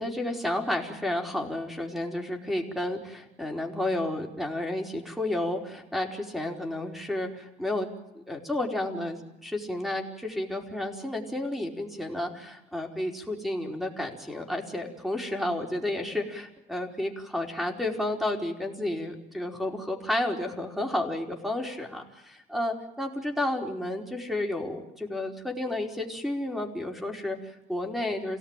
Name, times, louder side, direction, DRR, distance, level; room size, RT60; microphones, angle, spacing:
voice 1, 0.0-28.4, left 1 dB, ahead, 3 dB, 4.7 m, -31 dB
28.0 x 17.5 x 9.1 m, 0.98 s
cardioid pair, 110°, 17 cm